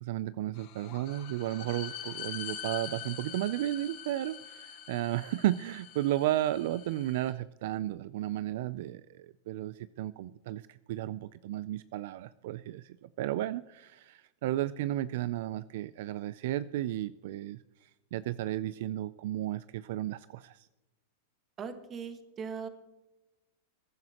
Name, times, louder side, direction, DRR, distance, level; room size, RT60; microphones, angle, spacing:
voice 1, 0.0-20.7, right 14 dB, 60° right, 16 dB, 0.4 m, -34 dB
sound 1, 0.6-7.3, left 10 dB, 45° left, 4.3 m, -44 dB
voice 2, 21.6-22.7, right 6 dB, 25° right, 8 dB, 1.6 m, -39 dB
21.5 x 10.5 x 2.9 m, 1.0 s
supercardioid pair, 145°, 0 cm